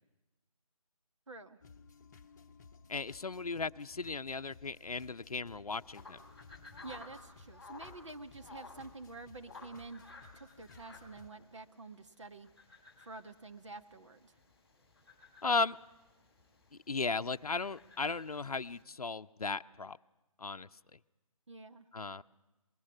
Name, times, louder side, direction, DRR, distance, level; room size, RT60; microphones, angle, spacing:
voice 1, 1.3-1.6 6.8-10.0 10.3-12.5 13.0-14.4 21.5-21.9, right 3 dB, 55° right, 6 dB, 1.4 m, -48 dB
sound 1, 1.6-11.3, left 4 dB, 30° left, 1.0 m, -58 dB
voice 2, 2.9-6.2 15.4-15.8 16.9-20.0 20.4-20.7 21.9-22.2, left 4 dB, 75° left, 10 dB, 0.6 m, -36 dB
sound 2, 5.8-18.8, left 3 dB, 5° right, 3.3 m, -56 dB
24.5 x 20.5 x 6.1 m, 1.1 s
figure-of-eight pair, 155°, 19 cm